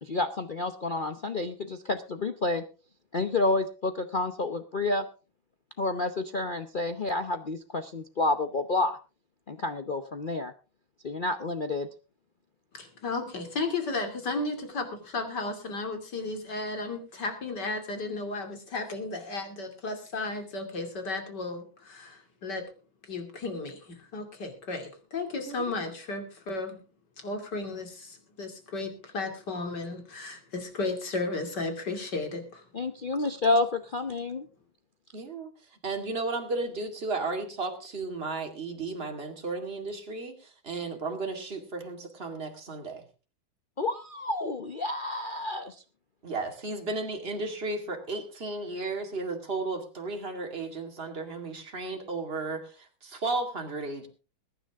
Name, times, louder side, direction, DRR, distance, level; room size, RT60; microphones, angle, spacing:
voice 1, 0.0-2.6 3.1-5.1 5.8-9.0 9.5-10.5 11.0-11.9 32.7-34.5 43.8-45.8, left 2 dB, 70° left, 8 dB, 0.4 m, -29 dB
voice 2, 12.7-22.7 23.1-26.8 27.2-32.7, left 3 dB, 55° left, 5 dB, 3.4 m, -34 dB
voice 3, 35.1-35.5 35.8-43.0 46.2-54.1, right 3 dB, 30° right, 3 dB, 2.6 m, -34 dB
21.5 x 10.0 x 3.6 m, 0.35 s
omnidirectional pair, 2.2 m